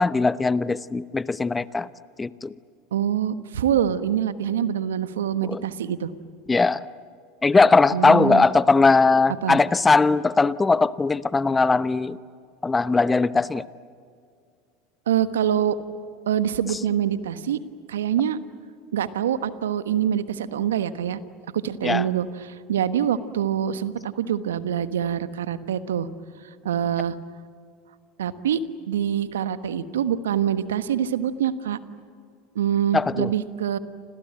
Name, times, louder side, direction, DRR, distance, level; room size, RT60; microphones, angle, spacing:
voice 1, 0.0-1.9 2.2-2.5 5.4-5.6 6.5-6.8 7.4-12.2 12.6-13.6 21.8-22.1 32.9-33.3, left 3 dB, 15° left, 16 dB, 0.9 m, -19 dB
voice 2, 2.9-6.1 7.9-8.5 9.4-9.6 15.1-15.8 16.3-17.6 17.9-18.4 18.9-21.2 21.5-26.1 26.6-27.2 28.2-28.6 28.9-31.8 32.5-33.8, right 9 dB, 80° right, 13 dB, 1.3 m, -25 dB
29.5 x 26.0 x 7.7 m, 2.2 s
hypercardioid pair, 80°, 0 cm